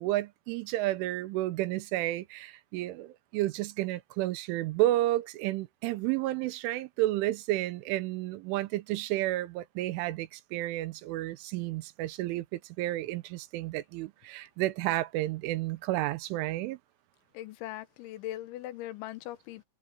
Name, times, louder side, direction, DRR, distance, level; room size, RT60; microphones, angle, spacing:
voice 1, 0.0-16.8, right 16 dB, 90° right, 3.4 m, -31 dB
voice 2, 17.3-19.7, left 14 dB, 80° left, 3.3 m, -40 dB
omnidirectional pair, 5.4 m